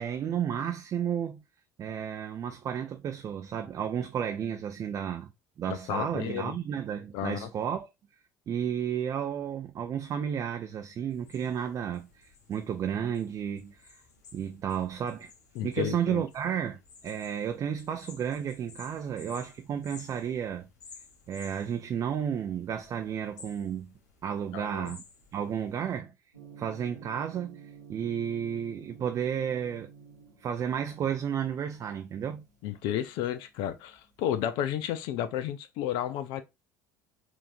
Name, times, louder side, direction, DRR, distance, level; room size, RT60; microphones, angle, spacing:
voice 1, 0.0-1.4 1.8-5.3 5.6-7.9 8.5-14.0 14.3-15.3 15.6-20.7 21.3-23.9 24.2-25.0 25.3-26.1 26.6-29.9 30.4-32.4, right 8 dB, 40° right, 0.5 m, -32 dB
voice 2, 5.7-6.5 7.1-7.5 15.6-16.2 24.5-24.9 32.6-36.4, left 10 dB, 60° left, 0.4 m, -32 dB
sound 1, 11.1-26.0, left 4 dB, 75° left, 0.9 m, -55 dB
Gong, 26.3-34.4, right 6 dB, 85° right, 1.3 m, -52 dB
4.4 x 2.7 x 2.5 m
figure-of-eight pair, 60°, 9 cm